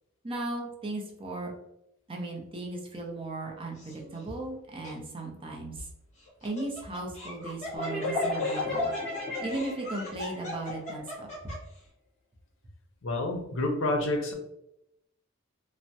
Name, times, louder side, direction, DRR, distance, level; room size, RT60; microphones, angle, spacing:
voice 1, 0.2-1.5 2.1-5.9 6.4-8.9 9.4-11.5, right 2 dB, 25° right, 1 dB, 0.5 m, -36 dB
Laughter, 3.8-4.2 4.8-4.9 6.2-11.8, equal, 35° left, 1.1 m, -41 dB
sound 1, 7.7-11.3, left 2 dB, 5° left, 1.4 m, -32 dB
voice 2, 13.0-14.3, left 2 dB, 70° left, 3 dB, 0.6 m, -28 dB
3.3 x 2.1 x 2.7 m, 0.81 s
head